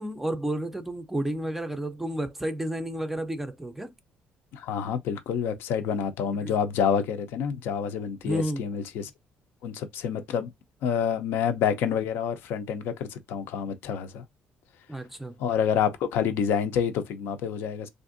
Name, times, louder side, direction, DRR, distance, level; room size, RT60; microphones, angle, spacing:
voice 1, 0.0-3.9 6.4-6.5 8.2-8.6 14.9-15.4, right 1 dB, 5° right, 0.3 m, -31 dB
voice 2, 4.5-9.1 9.6-10.5 10.8-14.2 15.4-17.9, left 7 dB, 85° left, 0.5 m, -28 dB
3.5 x 2.5 x 2.5 m
cardioid pair, 160°, 4 cm